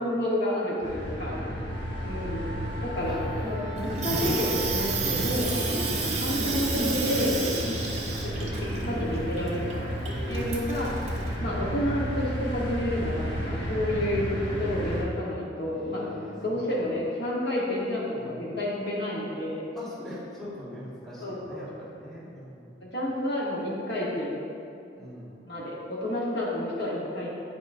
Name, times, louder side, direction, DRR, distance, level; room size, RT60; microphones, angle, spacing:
voice 1, 0.0-1.4 2.0-5.5 5.9-7.4 8.2-9.9 10.3-10.9 11.4-14.3 14.6-19.6 21.2-21.6 22.8-24.4 25.5-27.3, left 1 dB, 65° left, -5 dB, 1.2 m, -30 dB
Trem chegando na Estação, 0.8-15.0, equal, 25° left, 1.4 m, -33 dB
voice 2, 1.2-2.2 2.8-3.4 5.8-6.2 10.0-11.1 11.4-11.8 15.7-16.9 18.1-18.6 19.7-22.8 24.9-25.4, equal, ahead, -9 dB, 1.5 m, -43 dB
Wind instrument woodwind instrument, 1.6-6.1, equal, 20° right, 0.4 m, -43 dB
Water tap faucet / Sink (filling or washing), 3.8-11.3, right 3 dB, 35° right, 0.8 m, -31 dB
9.8 x 4.8 x 2.6 m, 2.6 s
head